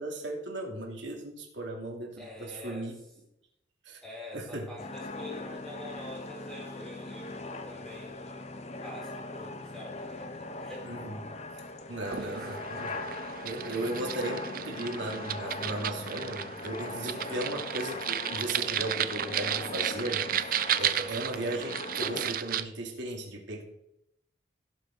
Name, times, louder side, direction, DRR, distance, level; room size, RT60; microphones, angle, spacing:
voice 1, 0.0-2.9 3.8-4.0 4.3-4.6 10.8-11.2 11.9-13.0 13.4-23.6, right 1 dB, 75° right, 0 dB, 2.7 m, -36 dB
voice 2, 2.2-2.9 4.0-8.5 8.8-11.1 12.2-12.5 13.7-14.0 17.1-17.5, left 1 dB, 5° left, -4 dB, 4.1 m, -46 dB
sound 1, 4.8-22.4, left 2 dB, 35° left, 0.8 m, -40 dB
sound 2, 12.0-22.6, right 10 dB, 45° right, 0.5 m, -34 dB
16.5 x 7.4 x 3.8 m, 0.79 s
head